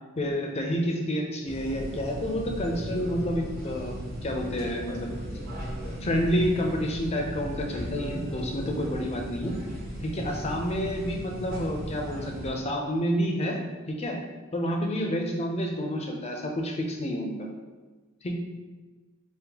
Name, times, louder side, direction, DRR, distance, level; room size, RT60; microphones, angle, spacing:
voice 1, 0.2-3.9 4.2-5.1 6.0-9.5 10.0-13.6 13.9-14.2 14.5-17.5 18.2-18.4, equal, 30° left, 1 dB, 0.5 m, -29 dB
sound 1, 1.5-12.5, equal, 45° right, 1.1 m, -36 dB
5.2 x 2.1 x 2.9 m, 1.3 s
head